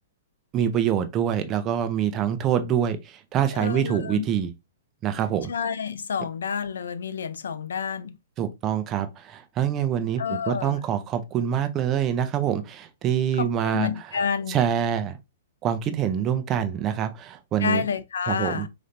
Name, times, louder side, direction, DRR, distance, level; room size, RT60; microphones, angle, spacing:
voice 1, 0.5-4.5 5.0-5.5 8.4-13.9 14.5-15.2 15.6-17.9 18.3-18.7, right 9 dB, 20° right, 0.5 m, -25 dB
voice 2, 3.5-4.2 5.5-8.2 10.2-10.8 13.4-14.6 17.6-18.7, left 6 dB, 90° left, 0.5 m, -29 dB
4.1 x 3.2 x 2.5 m
hypercardioid pair, 155°, 0 cm